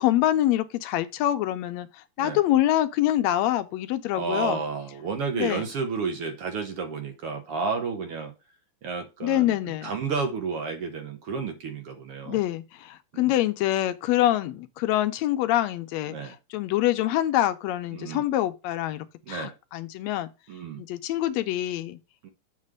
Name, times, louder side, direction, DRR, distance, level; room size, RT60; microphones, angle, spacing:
voice 1, 0.0-4.6 5.3-5.6 9.2-9.9 12.3-20.3 20.8-22.0, left 13 dB, 80° left, 1.8 m, -25 dB
voice 2, 4.1-8.3 8.8-9.6 9.8-12.4 13.1-13.3 16.1-16.3 17.9-18.2 19.3-19.5 20.5-20.8 22.2-22.3, right 5 dB, 60° right, 1.8 m, -31 dB
7.5 x 3.3 x 6.3 m
omnidirectional pair, 3.3 m